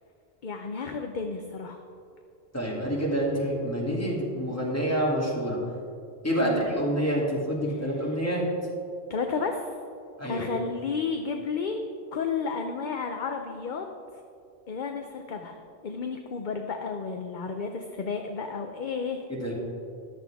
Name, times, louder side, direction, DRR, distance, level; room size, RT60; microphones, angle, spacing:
voice 1, 0.4-1.8 6.4-6.6 7.7-8.2 9.1-9.7 10.2-11.8 12.1-13.9 14.7-15.6 15.8-19.2, left 5 dB, 50° left, 4 dB, 0.7 m, -32 dB
voice 2, 2.5-5.6 6.2-8.4 10.2-10.5 19.3-19.5, equal, 15° left, -5 dB, 2.7 m, -27 dB
14.0 x 11.5 x 3.5 m, 2.4 s
omnidirectional pair, 1.2 m